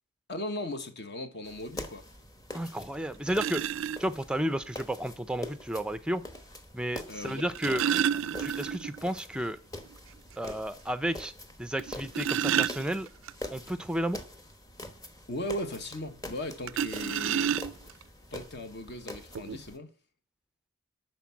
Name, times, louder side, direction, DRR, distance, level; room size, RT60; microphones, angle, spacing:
voice 1, 0.3-2.0 7.1-8.4 15.3-17.5 18.3-19.9, left 1 dB, 50° left, 1.3 m, -38 dB
sound 1, 1.4-19.8, left 1 dB, 15° left, 1.1 m, -45 dB
voice 2, 2.5-3.6 4.0-6.2 6.7-7.8 8.4-9.6 10.4-11.3 11.6-13.1 13.5-14.2, right 1 dB, 5° right, 0.5 m, -32 dB
sound 2, 2.7-2.8 3.3-4.0 5.4-5.5 7.3-9.0 9.3-9.4 9.9-10.0 10.5-10.6 11.8-13.3 16.7-18.0 18.9-19.0 19.3-19.6, right 9 dB, 60° right, 0.4 m, -30 dB
12.0 x 4.6 x 8.4 m
head